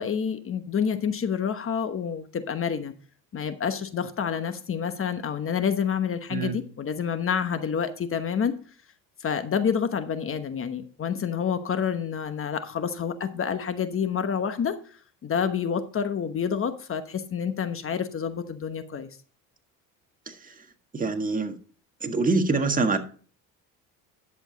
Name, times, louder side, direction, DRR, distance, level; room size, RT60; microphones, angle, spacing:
voice 1, 0.0-2.9 3.3-8.6 9.2-14.8 15.2-19.1, left 7 dB, 35° left, 10 dB, 1.1 m, -28 dB
voice 2, 20.9-21.5 22.0-23.0, right 3 dB, 25° right, 5 dB, 1.6 m, -25 dB
10.5 x 7.0 x 4.0 m, 0.41 s
cardioid pair, 100°, 36 cm